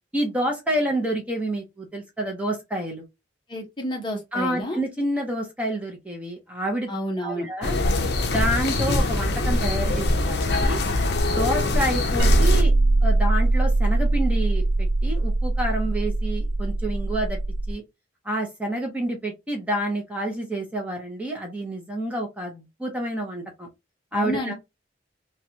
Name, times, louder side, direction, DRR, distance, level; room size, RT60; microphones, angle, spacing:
voice 1, 0.1-3.0 4.3-6.9 7.2-7.8 8.2-10.8 11.3-12.7 13.0-17.4 17.7-17.8 18.2-23.7 24.1-24.5, right 1 dB, 10° right, 0.7 m, -28 dB
voice 2, 3.5-4.8 6.9-7.5 24.1-24.5, equal, 25° left, 0.7 m, -30 dB
sound 1, 7.6-12.6, left 2 dB, 60° left, 0.6 m, -23 dB
sound 2, 12.2-17.7, right 2 dB, 70° right, 0.4 m, -21 dB
3.1 x 2.3 x 2.7 m
head